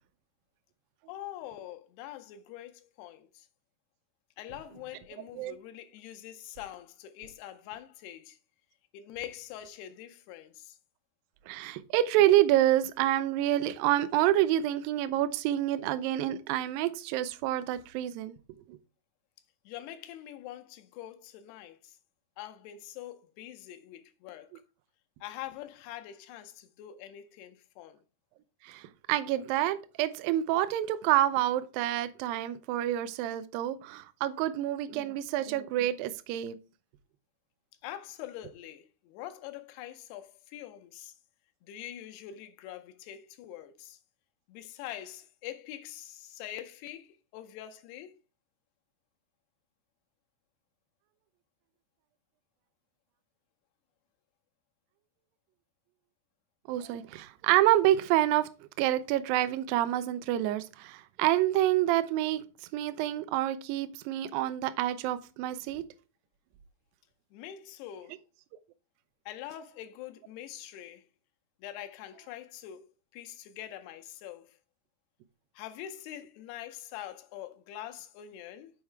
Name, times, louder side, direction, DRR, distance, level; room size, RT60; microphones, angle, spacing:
voice 1, 1.1-3.5 4.4-8.4 8.9-10.8 19.7-22.0 22.4-24.5 25.2-28.0 37.8-41.1 41.6-44.0 44.5-48.1 67.3-68.2 69.3-71.0 71.6-74.6 75.6-78.7, left 12 dB, 80° left, 2.7 m, -44 dB
voice 2, 11.5-18.3 18.7-18.8 28.6-28.8 29.1-36.6 56.7-58.5 58.8-62.4 62.7-65.8, right 13 dB, 85° right, 2.0 m, -27 dB
7.1 x 4.7 x 4.4 m
omnidirectional pair, 4.8 m